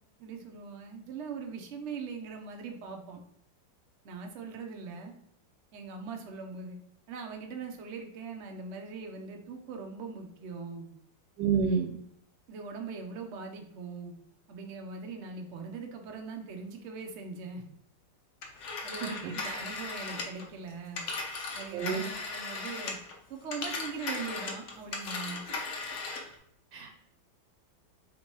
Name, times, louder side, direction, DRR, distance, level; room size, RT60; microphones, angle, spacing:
voice 1, 0.2-3.2 4.0-5.1 5.7-6.8 7.1-10.9 12.5-14.1 14.5-17.6 18.8-21.0 21.5-23.0 23.3-25.4, right 4 dB, 60° right, 3 dB, 0.7 m, -41 dB
voice 2, 11.4-11.9 19.0-19.6 21.7-22.0 26.7-27.0, right 6 dB, 75° right, 2 dB, 1.3 m, -30 dB
Telephone, 18.4-23.1 23.4-26.3, left 3 dB, 55° left, 0.9 m, -37 dB
3.7 x 2.9 x 4.4 m, 0.70 s
omnidirectional pair, 2.0 m